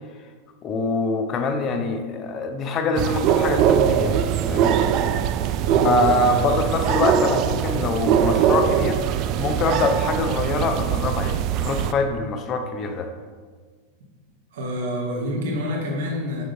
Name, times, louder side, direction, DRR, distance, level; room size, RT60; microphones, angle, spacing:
voice 1, 0.6-4.8 5.8-13.1, left 3 dB, 30° left, 6 dB, 0.7 m, -24 dB
sound 1, 3.0-11.9, right 9 dB, 40° right, 0.3 m, -22 dB
voice 2, 5.6-6.4 14.5-16.4, equal, 55° right, -1 dB, 1.5 m, -28 dB
7.1 x 6.1 x 2.7 m, 1.5 s
figure-of-eight pair, 90°, 0 cm